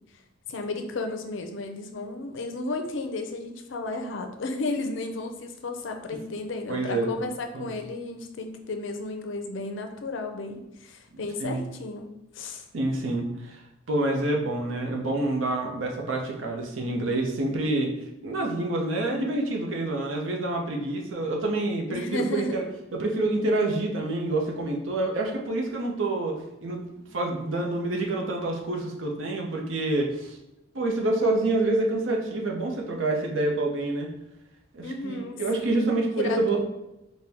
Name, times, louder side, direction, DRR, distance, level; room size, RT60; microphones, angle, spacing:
voice 1, 0.5-12.1 12.3-12.6 21.9-22.6 34.8-36.6, left 2 dB, 70° left, 5 dB, 0.5 m, -33 dB
voice 2, 6.7-7.1 7.5-7.7 11.4-11.6 12.7-13.6 13.9-17.9 18.2-22.6 22.9-26.9 27.1-30.4 30.7-34.1 34.7-36.6, right 2 dB, 80° right, 1 dB, 0.7 m, -27 dB
4.3 x 2.2 x 3.4 m, 0.91 s
head